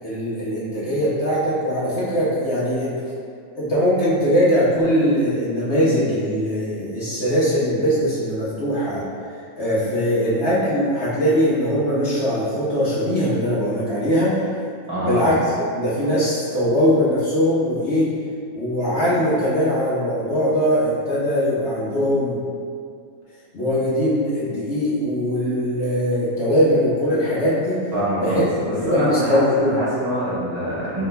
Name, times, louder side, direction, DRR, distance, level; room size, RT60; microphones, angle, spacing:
voice 1, 0.0-2.9 3.5-9.0 9.6-14.4 15.0-18.1 18.5-22.4 23.5-27.8 28.2-28.4 28.8-29.8, equal, 55° left, -10 dB, 1.3 m, -21 dB
voice 2, 14.9-15.3 27.9-31.0, equal, 50° right, -11 dB, 1.5 m, -24 dB
4.9 x 3.7 x 2.2 m, 2.3 s
omnidirectional pair, 1.5 m